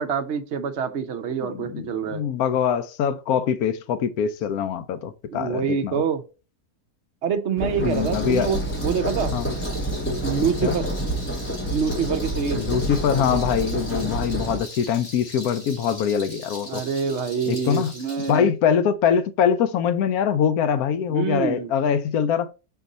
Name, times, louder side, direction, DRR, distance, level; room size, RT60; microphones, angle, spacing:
voice 1, 0.0-2.2 5.3-6.2 7.2-9.3 10.2-10.9 11.7-12.6 16.7-18.5 21.1-21.7, right 6 dB, 55° right, 0.9 m, -26 dB
voice 2, 1.5-6.0 7.8-8.5 9.3-9.5 10.6-10.8 12.5-16.8 17.5-17.9 18.3-22.5, left 8 dB, 70° left, 1.0 m, -23 dB
sound 1, 7.6-14.6, right 1 dB, 10° left, 0.7 m, -28 dB
Rattle, 7.7-18.4, left 1 dB, 35° left, 2.8 m, -41 dB
5.2 x 4.5 x 4.0 m
omnidirectional pair, 1.7 m